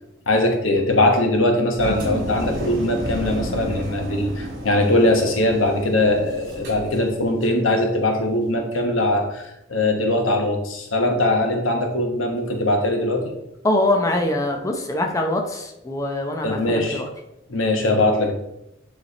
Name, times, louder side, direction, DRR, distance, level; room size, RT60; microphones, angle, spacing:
voice 1, 0.3-13.3 16.4-17.0 17.5-18.3, left 1 dB, 90° left, 3 dB, 1.2 m, -21 dB
Engine, 1.8-7.6, equal, 50° right, 2.5 m, -32 dB
voice 2, 13.6-17.1, left 1 dB, 15° left, 2 dB, 0.7 m, -23 dB
8.9 x 3.4 x 4.1 m, 0.85 s
head